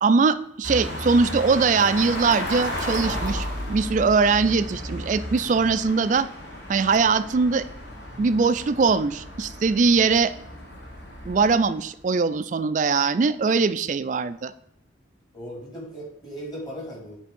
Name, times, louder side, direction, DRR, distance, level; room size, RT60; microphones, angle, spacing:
voice 1, 0.0-6.3 6.7-7.7 8.2-10.3 11.3-14.5, right 4 dB, 40° right, 14 dB, 0.3 m, -21 dB
sound 1, 0.6-12.0, equal, 70° left, 2.1 m, -34 dB
voice 2, 15.3-17.2, equal, 25° left, -3 dB, 2.3 m, -37 dB
7.5 x 3.5 x 5.3 m, 0.76 s
head